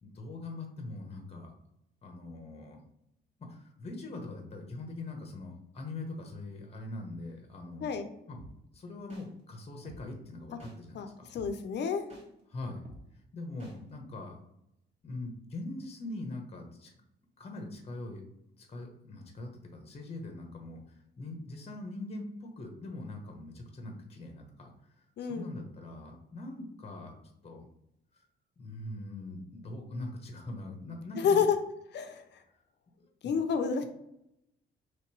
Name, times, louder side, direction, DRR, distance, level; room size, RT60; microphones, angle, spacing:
voice 1, 0.0-1.5 2.0-2.8 3.4-7.9 8.3-8.5 8.7-11.3 12.5-12.8 13.3-14.3 15.0-16.9 17.4-18.2 18.6-24.7 25.2-27.7 28.1-28.2 28.6-31.4 33.0-33.3, left 2 dB, 30° left, 3 dB, 0.9 m, -42 dB
voice 2, 7.8-8.1 10.9-12.0 25.2-25.5 31.2-31.5 31.9-32.2 33.2-33.9, left 6 dB, 60° left, 7 dB, 0.6 m, -30 dB
sound 1, 8.4-8.5 9.1-9.2 9.9-10.0 10.6-10.7 11.4-11.5 12.1-12.2 12.9-13.0 13.6-13.7, equal, 35° right, 1.6 m, -49 dB
3.2 x 2.9 x 4.5 m, 0.83 s
cardioid pair, 90°, 20 cm